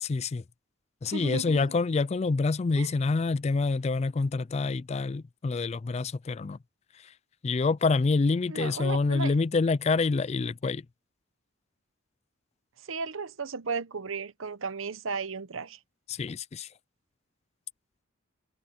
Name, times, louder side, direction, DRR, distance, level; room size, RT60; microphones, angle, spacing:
voice 1, 0.0-0.4 1.0-6.6 7.0-7.1 7.4-10.8 16.1-16.7, left 4 dB, 30° left, 0.3 m, -27 dB
voice 2, 1.1-1.6 2.8-2.9 8.5-9.3 12.8-15.8, right 4 dB, 80° right, 1.0 m, -35 dB
head